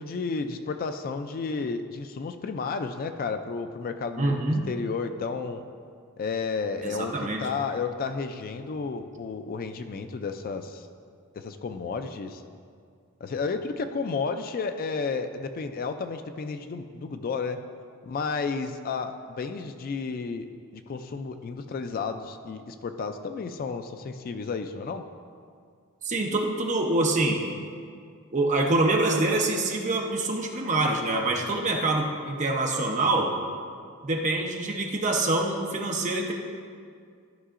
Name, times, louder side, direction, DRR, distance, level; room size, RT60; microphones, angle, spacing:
voice 1, 0.0-5.6 6.2-7.1 7.4-10.9 11.4-12.4 13.2-17.6 18.0-20.5 20.7-25.0, left 4 dB, 40° left, 8 dB, 0.3 m, -32 dB
voice 2, 4.2-4.6 6.8-7.5 26.0-27.4 28.3-33.3 34.0-36.3, right 2 dB, 35° right, 1 dB, 0.8 m, -25 dB
12.5 x 5.6 x 2.5 m, 2.2 s
head